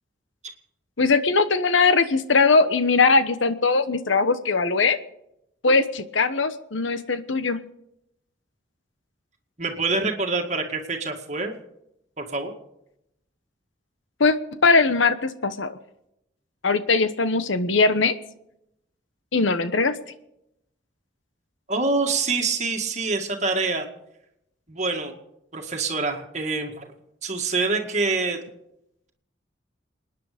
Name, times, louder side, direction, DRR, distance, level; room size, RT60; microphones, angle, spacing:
voice 1, 1.0-5.0 5.6-7.6 14.2-14.4 14.6-15.7 16.6-18.1 19.3-19.9, left 4 dB, 85° left, 12 dB, 1.1 m, -20 dB
voice 2, 9.6-11.5 12.2-12.5 21.7-23.9 24.7-25.2 25.5-26.9 27.2-28.4, right 3 dB, 35° right, 3 dB, 2.0 m, -26 dB
28.0 x 9.9 x 5.1 m, 0.82 s
head